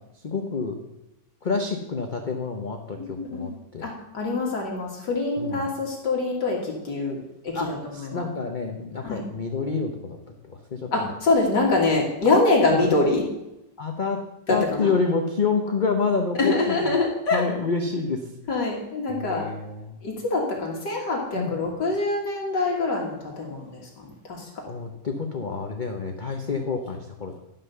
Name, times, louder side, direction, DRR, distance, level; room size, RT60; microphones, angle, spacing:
voice 1, 0.2-0.8 1.4-3.9 5.4-5.7 7.5-11.1 12.7-12.9 13.8-14.2 14.5-16.9 17.3-18.3 19.1-20.0 21.3-21.6 24.7-27.4, left 4 dB, 40° left, 3 dB, 0.7 m, -28 dB
voice 2, 3.0-3.6 3.8-8.2 9.0-9.3 10.9-13.2 14.5-14.9 16.4-17.4 18.5-19.5 20.0-24.5, left 3 dB, 65° left, -1 dB, 2.3 m, -25 dB
11.5 x 5.6 x 6.7 m, 0.91 s
omnidirectional pair, 2.0 m